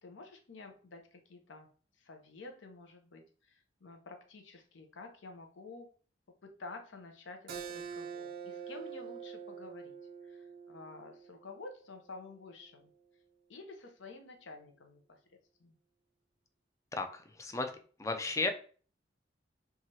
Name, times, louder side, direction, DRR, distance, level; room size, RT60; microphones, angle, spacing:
voice 1, 0.0-1.7 2.0-5.9 6.4-10.0 10.2-12.9 13.5-15.2 15.6-15.7, left 3 dB, 75° left, 4 dB, 0.6 m, -50 dB
Keyboard (musical), 7.5-12.7, right 7 dB, 50° right, 0.4 m, -46 dB
voice 2, 16.9-17.7 18.0-18.5, left 3 dB, 15° left, 5 dB, 0.3 m, -34 dB
3.1 x 2.3 x 2.7 m, 0.41 s
head